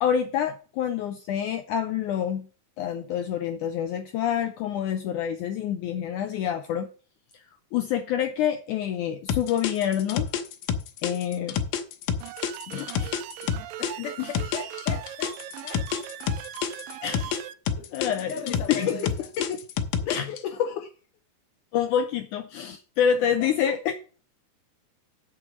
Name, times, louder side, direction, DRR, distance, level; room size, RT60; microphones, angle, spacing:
voice 1, 0.0-2.5 2.8-6.9 7.7-10.3 11.0-11.6 12.7-13.1 14.2-14.3 17.0-17.4 17.9-18.3 18.7-19.0 19.4-19.6 20.0-20.9 21.7-23.9, left 9 dB, 85° left, 1.8 m, -27 dB
sound 1, 9.3-13.9 14.3-17.4 17.7-20.4, left 7 dB, 70° left, 2.3 m, -28 dB
sound 2, 12.2-17.5, right 13 dB, 80° right, 2.1 m, -40 dB
voice 2, 13.8-16.1 17.8-19.3 23.4-23.7, left 5 dB, 45° left, 0.9 m, -39 dB
8.2 x 7.3 x 6.3 m
omnidirectional pair, 4.4 m